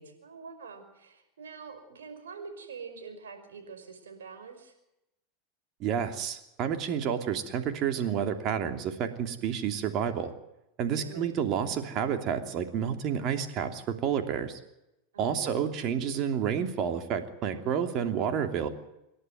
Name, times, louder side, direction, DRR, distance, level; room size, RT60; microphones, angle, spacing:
voice 1, 0.0-4.7 10.8-11.4 15.1-15.7, right 5 dB, 85° right, 6 dB, 5.4 m, -45 dB
voice 2, 5.8-10.3 10.8-14.6 15.2-18.7, right 8 dB, 50° right, 7 dB, 2.9 m, -30 dB
27.5 x 11.5 x 9.3 m, 0.90 s
hypercardioid pair, 100°, 0 cm